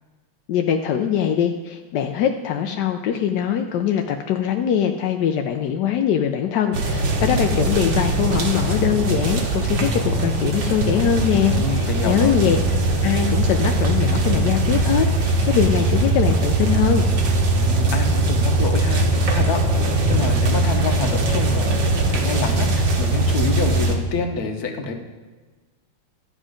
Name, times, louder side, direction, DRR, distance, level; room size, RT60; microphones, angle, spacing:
voice 1, 0.5-12.6 13.0-17.1, left 9 dB, 75° left, 5 dB, 1.0 m, -22 dB
sound 1, 6.7-24.0, right 2 dB, 60° right, 1.9 m, -20 dB
voice 2, 11.5-12.4 17.5-19.6 20.1-24.9, left 3 dB, 50° left, 4 dB, 1.4 m, -28 dB
12.5 x 7.6 x 5.0 m, 1.3 s
omnidirectional pair, 2.4 m